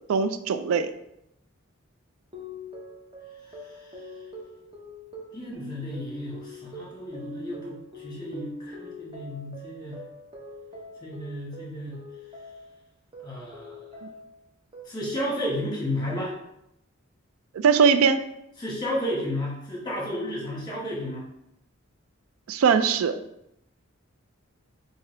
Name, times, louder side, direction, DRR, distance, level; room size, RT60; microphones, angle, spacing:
voice 1, 0.1-0.9 17.5-18.2 22.5-23.2, right 6 dB, 80° right, 11 dB, 0.3 m, -21 dB
sound 1, 2.3-12.8 13.1-14.4 14.7-15.3, left 1 dB, 25° right, 0.7 m, -43 dB
voice 2, 3.4-4.1 5.3-10.0 11.0-12.0 13.2-13.9 14.8-16.3 18.6-21.2, left 1 dB, 20° left, -4 dB, 1.3 m, -33 dB
5.7 x 2.7 x 3.2 m, 0.82 s
head